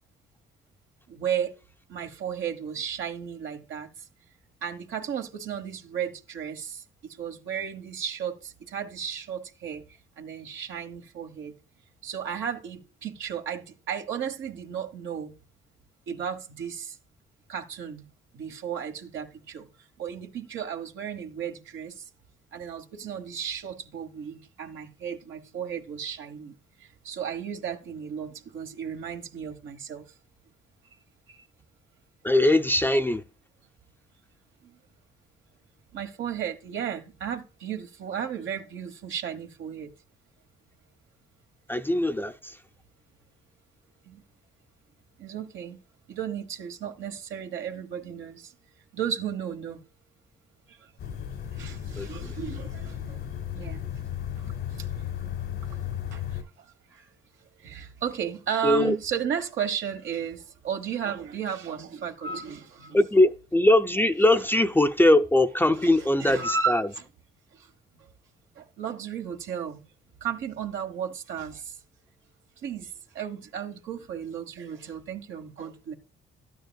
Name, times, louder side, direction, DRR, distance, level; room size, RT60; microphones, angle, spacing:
voice 1, 1.1-1.6 1.9-3.9 4.6-9.8 10.2-11.5 12.0-15.3 16.1-17.0 17.5-18.1 18.3-19.7 20.0-22.0 22.5-26.5 26.8-30.0 31.3-31.4 34.6-34.8 35.9-39.9 44.0-44.2 45.2-45.8 46.1-48.5 48.9-49.8 50.7-50.8 51.0-51.2 51.5-53.2 53.5-53.9 56.1-56.2 56.9-63.0 65.8-67.0 67.5-67.7 67.9-68.1 68.6-69.8 70.2-71.8 72.6-75.9, right 8 dB, 75° right, 1.2 m, -34 dB
voice 2, 32.2-33.2 41.7-42.6 52.0-52.3 58.6-59.0 62.9-66.9, left 1 dB, 10° left, 0.5 m, -21 dB
sound 1, 51.0-56.4, left 10 dB, 85° left, 1.3 m, -34 dB
12.0 x 9.3 x 2.3 m
cardioid pair, 90°, 20 cm